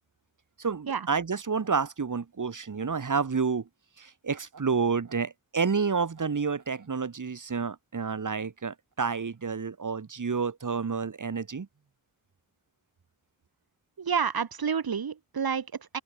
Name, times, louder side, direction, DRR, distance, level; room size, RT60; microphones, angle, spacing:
voice 1, 0.6-3.7 4.0-11.7, right 5 dB, 55° right, 5.3 m, -29 dB
voice 2, 14.0-16.0, right 6 dB, 80° right, 6.4 m, -29 dB
open air
wide cardioid pair, 105°, 36 cm